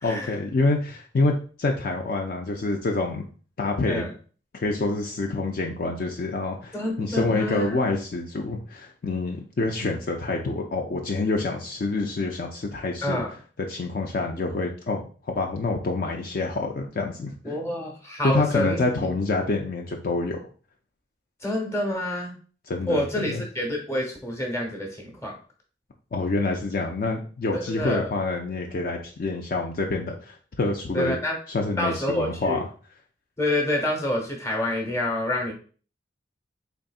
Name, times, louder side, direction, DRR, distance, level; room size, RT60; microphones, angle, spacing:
voice 1, 0.0-3.2 3.6-4.0 4.5-13.2 13.7-17.6 18.2-20.4 22.7-23.4 26.1-31.2 31.5-32.6, left 3 dB, 50° left, 1 dB, 0.4 m, -27 dB
voice 2, 6.7-7.8 13.0-13.3 17.4-19.1 21.4-22.3 22.9-25.4 27.5-28.1 30.9-31.3 31.8-32.6 33.4-35.5, left 1 dB, 15° left, 0 dB, 1.0 m, -28 dB
3.9 x 3.4 x 2.3 m, 0.41 s
head